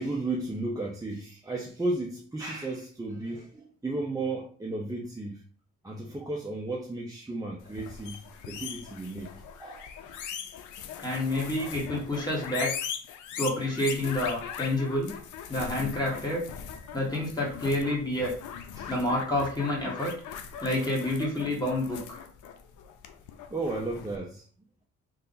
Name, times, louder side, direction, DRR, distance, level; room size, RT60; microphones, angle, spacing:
voice 1, 0.0-5.4 5.8-9.3 9.6-9.9 18.8-18.9 23.5-24.4, right 2 dB, 10° right, 0.7 m, -34 dB
sound 1, 7.6-24.2, left 8 dB, 80° left, 0.6 m, -40 dB
voice 2, 11.0-12.7 13.4-15.1 15.5-16.5 16.9-18.3 18.9-20.1 20.6-22.2, left 1 dB, 15° left, 1.6 m, -28 dB
3.4 x 2.6 x 4.0 m
cardioid pair, 90°, 30 cm